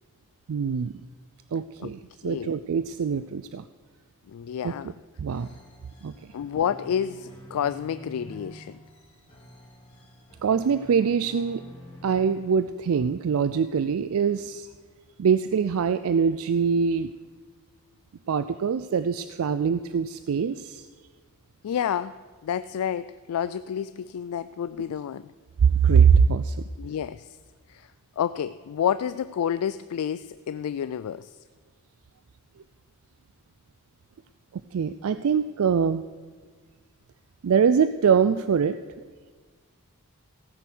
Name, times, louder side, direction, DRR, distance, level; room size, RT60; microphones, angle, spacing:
voice 1, 0.5-0.9 1.5-3.6 4.6-4.7 5.2-5.5 6.0-6.1 10.4-11.6 12.0-14.7 15.2-17.1 18.3-20.8 25.8-26.6 34.7-36.0 37.4-38.8, right 6 dB, 70° right, 12 dB, 0.4 m, -23 dB
voice 2, 4.3-4.9 6.3-8.8 21.6-22.2 22.4-25.3 26.8-27.3 27.7-27.9 28.2-31.4, left 8 dB, 80° left, 14 dB, 0.3 m, -29 dB
sound 1, 5.3-12.9, equal, 25° left, 2.8 m, -48 dB
15.5 x 9.1 x 6.1 m, 1.5 s
head